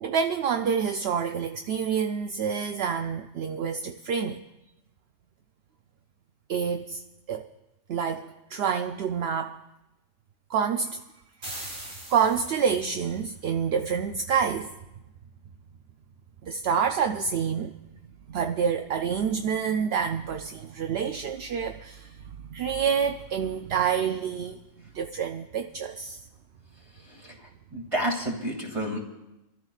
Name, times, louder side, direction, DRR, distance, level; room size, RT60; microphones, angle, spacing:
voice 1, 0.0-4.5 6.5-7.0 7.3-7.5 7.9-9.6 10.5-11.0 11.6-11.7 12.1-14.8 16.4-17.7 18.3-22.2 22.5-24.6 24.9-26.2, right 7 dB, 60° right, 0.7 m, -27 dB
sound 1, 11.4-13.0, right 1 dB, 75° right, 3.8 m, -40 dB
voice 2, 27.0-29.0, right 1 dB, 20° right, 2.6 m, -31 dB
29.0 x 13.5 x 2.4 m
omnidirectional pair, 1.4 m